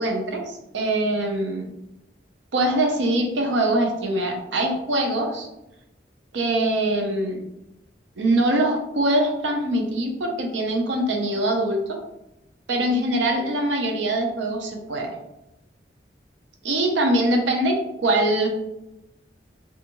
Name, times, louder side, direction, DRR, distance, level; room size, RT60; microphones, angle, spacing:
voice 1, 0.0-1.7 2.5-5.5 6.3-7.4 8.2-12.0 12.7-15.1 16.6-18.5, right 1 dB, 90° right, 2 dB, 0.6 m, -23 dB
2.6 x 2.4 x 2.8 m, 0.89 s
head